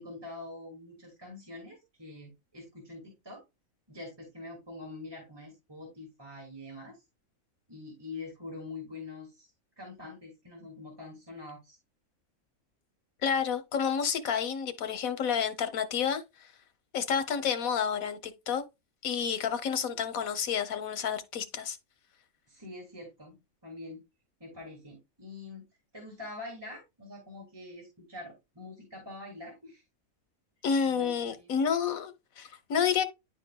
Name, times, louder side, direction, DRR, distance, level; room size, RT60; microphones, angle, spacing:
voice 1, 0.0-3.4 3.9-7.0 7.7-9.5 9.8-11.8 22.5-24.0 24.4-25.7 25.9-29.8 30.9-31.1 31.4-31.6, left 2 dB, 15° right, 1.8 m, -45 dB
voice 2, 13.2-16.5 16.9-18.6 19.0-21.8 30.6-33.0, left 7 dB, 75° left, 1.3 m, -30 dB
10.5 x 4.5 x 2.2 m
omnidirectional pair, 1.5 m